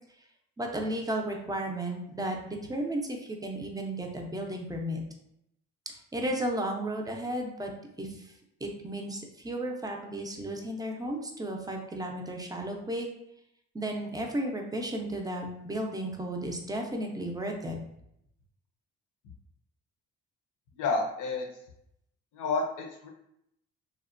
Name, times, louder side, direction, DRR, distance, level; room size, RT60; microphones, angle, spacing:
voice 1, 0.6-5.0 6.1-7.7 8.0-8.3 8.6-13.1 13.7-17.8, right 1 dB, 15° right, 1 dB, 0.4 m, -34 dB
voice 2, 20.8-21.4 22.3-23.1, left 3 dB, 80° left, 2 dB, 0.6 m, -30 dB
2.9 x 2.1 x 2.4 m, 0.78 s
cardioid pair, 90°, 30 cm